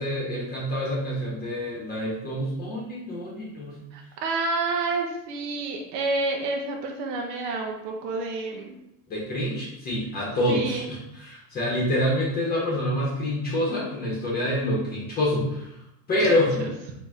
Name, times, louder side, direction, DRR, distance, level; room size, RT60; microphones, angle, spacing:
voice 1, 0.0-3.8 9.1-15.8 16.1-16.7, left 1 dB, 25° left, -5 dB, 1.0 m, -27 dB
voice 2, 3.9-8.8 10.5-10.9 16.2-16.3, right 3 dB, 75° right, 1 dB, 0.8 m, -29 dB
4.0 x 2.8 x 3.5 m, 0.84 s
supercardioid pair, 145°, 37 cm